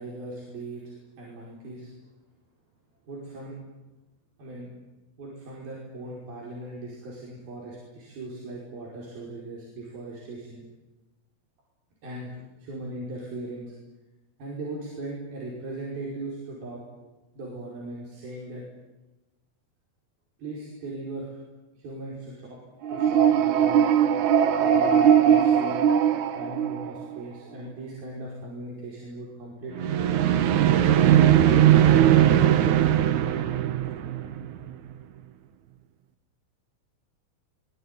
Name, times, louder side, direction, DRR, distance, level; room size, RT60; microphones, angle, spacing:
voice 1, 0.0-1.9 3.1-3.6 4.4-4.7 5.2-10.7 12.0-13.7 14.4-16.8 17.3-18.6 20.4-21.4 21.8-22.6 22.9-24.0 24.6-25.9 26.4-30.0 30.6-32.6, right 2 dB, 80° right, -3 dB, 7.0 m, -38 dB
sound 1, 22.8-27.2 29.8-34.7, right 10 dB, 65° right, 2.3 m, -20 dB
24.0 x 21.5 x 9.7 m, 1.1 s
omnidirectional pair, 4.2 m